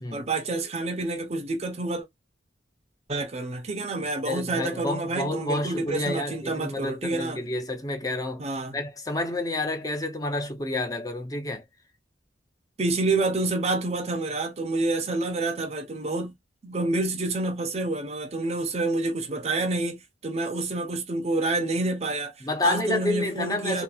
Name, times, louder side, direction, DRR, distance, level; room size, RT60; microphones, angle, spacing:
voice 1, 0.1-2.1 3.1-7.4 8.4-8.7 12.8-16.3 16.6-22.3 22.6-23.8, right 2 dB, 35° right, 0.5 m, -28 dB
voice 2, 4.2-8.5 8.7-11.6 22.4-23.8, left 2 dB, 20° left, 0.6 m, -29 dB
2.9 x 2.5 x 2.3 m
head